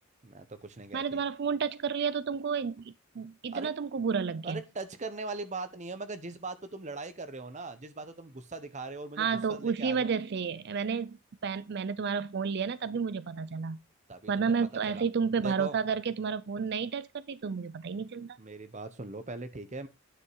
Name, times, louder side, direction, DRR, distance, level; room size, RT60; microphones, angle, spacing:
voice 1, 0.2-1.2 3.5-3.7 4.4-10.1 14.1-14.5 14.9-15.0 15.4-15.8 18.4-19.9, right 3 dB, 35° right, 0.9 m, -40 dB
voice 2, 0.9-4.6 9.2-13.8 14.3-18.4, right 6 dB, 50° right, 0.4 m, -31 dB
10.0 x 5.4 x 4.7 m
head